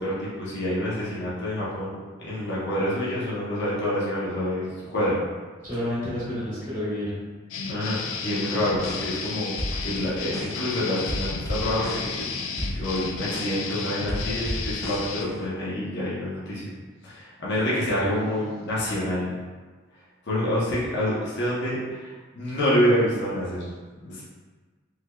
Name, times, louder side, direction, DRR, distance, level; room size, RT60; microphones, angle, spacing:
voice 1, 0.0-5.2 7.7-9.5 9.8-12.3 12.7-16.7 17.0-19.3 20.3-23.6 24.0-24.2, equal, 55° left, -8 dB, 0.8 m, -27 dB
voice 2, 5.6-7.2 17.9-18.3, left 1 dB, 15° right, -10 dB, 1.1 m, -30 dB
sound 1, 7.5-15.2, left 5 dB, 75° left, 0.4 m, -33 dB
sound 2, 8.7-9.3 9.6-10.7 11.1-13.7 14.1-15.4, equal, 15° left, 0.6 m, -33 dB
3.4 x 3.1 x 2.2 m, 1.4 s
head